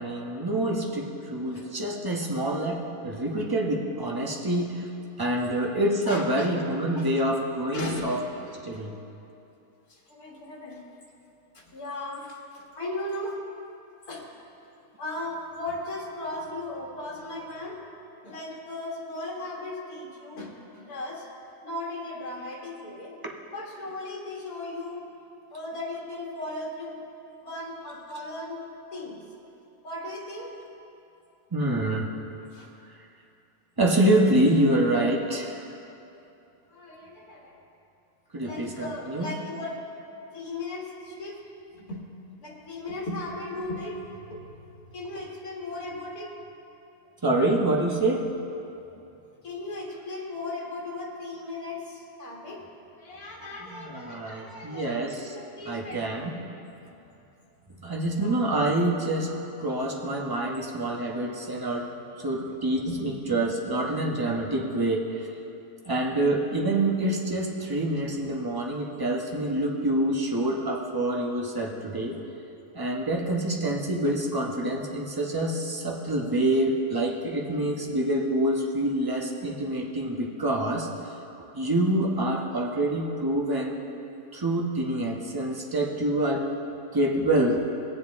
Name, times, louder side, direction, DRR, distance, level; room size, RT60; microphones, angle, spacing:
voice 1, 0.0-4.9 5.2-8.2 8.6-8.9 31.5-32.1 33.8-35.6 38.3-39.3 47.2-48.3 53.6-55.3 55.7-56.3 57.8-59.3 59.6-61.9 62.2-65.3 65.8-72.2 72.7-80.9 81.5-83.8 84.3-86.5 86.9-87.6, right 1 dB, 15° right, -1 dB, 0.9 m, -26 dB
voice 2, 6.1-6.5 6.9-7.1 7.7-8.2 8.7-8.8 9.9-10.8 11.5-13.4 14.1-14.3 15.0-17.8 18.2-21.3 21.6-23.2 23.5-25.1 25.5-27.0 27.4-28.6 28.9-29.3 29.8-30.6 32.4-32.7 36.7-37.6 38.4-39.8 40.3-41.4 41.7-42.0 42.4-44.5 44.9-46.4 49.4-52.7 52.9-56.2 56.8-57.0 57.8-58.4 62.8-63.0, left 2 dB, 85° left, -3 dB, 2.2 m, -37 dB
20.0 x 7.6 x 3.5 m, 2.8 s
omnidirectional pair, 1.6 m